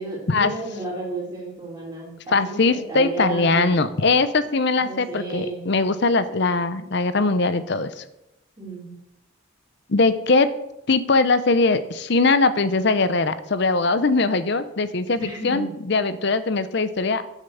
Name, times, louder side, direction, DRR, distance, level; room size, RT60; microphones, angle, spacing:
voice 1, 0.0-3.9 4.7-5.7 8.6-9.0 15.2-15.7, right 2 dB, 20° right, -5 dB, 3.3 m, -33 dB
voice 2, 2.3-8.0 9.9-10.5 10.9-17.2, left 3 dB, 55° left, 13 dB, 0.7 m, -21 dB
7.4 x 7.0 x 7.0 m, 0.86 s
head